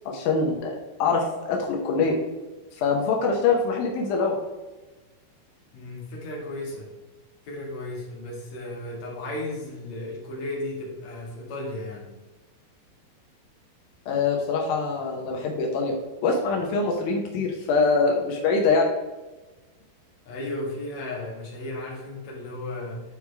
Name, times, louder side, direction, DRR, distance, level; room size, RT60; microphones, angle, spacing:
voice 1, 0.1-2.2 2.8-4.3 14.1-16.0 16.2-18.9, left 4 dB, 90° left, 1 dB, 1.8 m, -24 dB
voice 2, 5.7-6.9 7.4-12.1 20.3-23.0, left 1 dB, 50° left, -3 dB, 2.5 m, -34 dB
10.0 x 4.7 x 3.4 m, 1.2 s
omnidirectional pair, 5.3 m